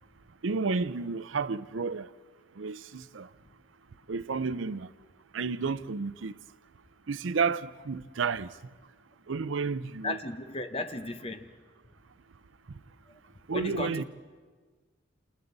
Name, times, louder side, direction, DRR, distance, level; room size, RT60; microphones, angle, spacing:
voice 1, 0.4-2.1 2.6-3.3 4.1-4.9 5.3-6.3 7.1-8.5 9.3-10.2 13.5-14.0, right 4 dB, 75° right, 0.6 m, -31 dB
voice 2, 10.0-11.5 13.5-14.0, left 2 dB, 30° left, 0.9 m, -35 dB
28.5 x 27.0 x 4.0 m
head